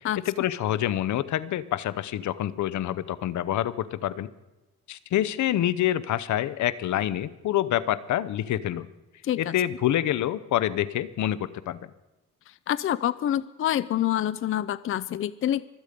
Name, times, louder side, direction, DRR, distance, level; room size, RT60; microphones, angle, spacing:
voice 1, 0.3-4.3 4.9-8.9 9.4-11.8, left 12 dB, 70° left, 18 dB, 0.8 m, -27 dB
voice 2, 9.2-9.5 12.5-15.7, left 11 dB, 45° left, 17 dB, 0.5 m, -27 dB
24.5 x 8.2 x 5.2 m, 1.1 s
cardioid pair, 90°, 30 cm